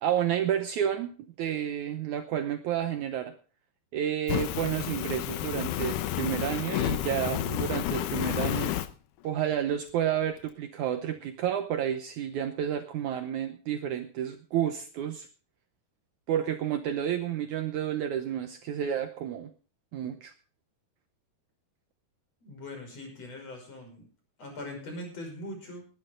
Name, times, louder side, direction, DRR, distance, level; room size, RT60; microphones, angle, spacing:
voice 1, 0.0-1.1 1.4-3.3 3.9-8.7 9.2-15.3 16.3-19.5 19.9-20.3, right 10 dB, 90° right, 8 dB, 1.7 m, -30 dB
Fire, 4.3-8.9, left 13 dB, 80° left, 1.9 m, -30 dB
voice 2, 22.4-24.1 24.4-25.9, left 1 dB, 40° left, 3 dB, 6.6 m, -41 dB
19.0 x 11.5 x 3.8 m, 0.37 s
omnidirectional pair, 4.7 m